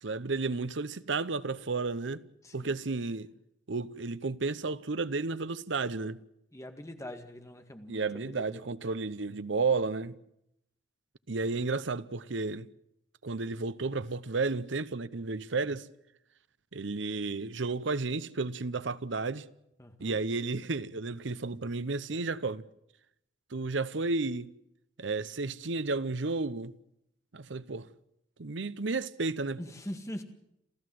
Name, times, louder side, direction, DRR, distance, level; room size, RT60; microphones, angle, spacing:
voice 1, 0.0-2.2 2.5-3.3 3.7-6.2 7.9-10.2 11.3-12.7 13.2-15.9 16.7-19.4 20.0-22.6 23.5-24.5 25.0-26.7 27.3-27.9 28.4-29.6, right 3 dB, 75° right, 0.8 m, -32 dB
voice 2, 2.4-2.8 6.5-8.6 11.4-11.6 19.8-20.2 29.6-30.2, equal, 15° left, 1.9 m, -43 dB
28.0 x 14.5 x 7.8 m
head